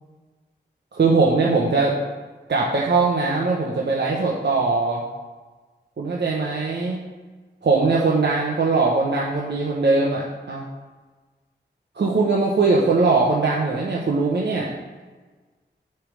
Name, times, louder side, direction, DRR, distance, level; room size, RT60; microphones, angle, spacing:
voice 1, 0.9-2.0 2.5-5.0 6.0-7.1 7.6-10.6 11.9-14.7, right 3 dB, 65° right, -3 dB, 0.9 m, -21 dB
8.5 x 3.4 x 6.2 m, 1.3 s
wide cardioid pair, 65°, 19 cm